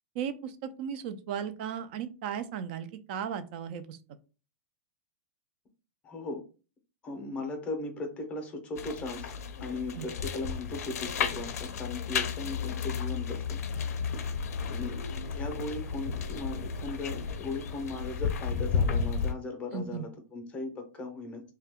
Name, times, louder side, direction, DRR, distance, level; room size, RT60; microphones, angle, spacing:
voice 1, 0.2-4.0 10.0-10.1 19.7-20.1, right 8 dB, 40° right, 11 dB, 0.4 m, -36 dB
voice 2, 6.0-6.4 7.0-9.3 9.6-13.6 14.7-15.0 15.3-21.4, left 2 dB, 15° left, 4 dB, 0.6 m, -37 dB
sound 1, 8.8-19.3, left 6 dB, 80° left, 0.4 m, -33 dB
2.7 x 2.2 x 3.4 m, 0.34 s
supercardioid pair, 165°, 8 cm